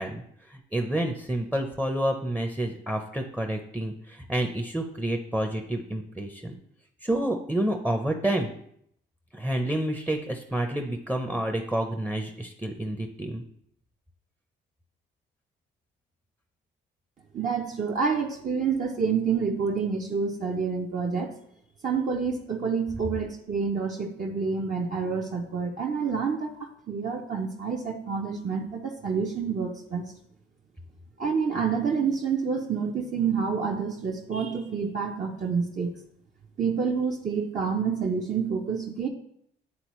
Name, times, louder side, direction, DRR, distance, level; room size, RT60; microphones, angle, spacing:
voice 1, 0.0-6.6 7.0-8.5 9.3-13.4, right 1 dB, 5° right, 3 dB, 0.7 m, -29 dB
voice 2, 17.3-21.3 21.8-30.0 31.2-35.9 36.6-39.1, right 5 dB, 40° right, -1 dB, 0.8 m, -28 dB
9.8 x 3.8 x 3.1 m, 0.70 s
cardioid pair, 90°, 20 cm